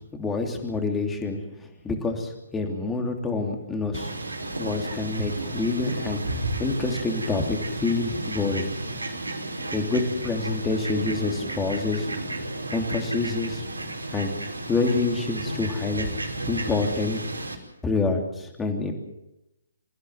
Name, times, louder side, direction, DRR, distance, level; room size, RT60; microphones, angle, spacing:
voice 1, 0.0-4.1 4.6-6.2 6.6-8.7 9.7-12.1 12.7-13.6 14.1-14.3 14.7-16.1 16.5-17.2 17.8-18.9, left 3 dB, 10° left, 3 dB, 3.1 m, -27 dB
Fowl, 3.9-17.5, right 2 dB, 75° right, 4.9 m, -33 dB
27.0 x 16.0 x 7.9 m, 0.92 s
figure-of-eight pair, 135°, 0 cm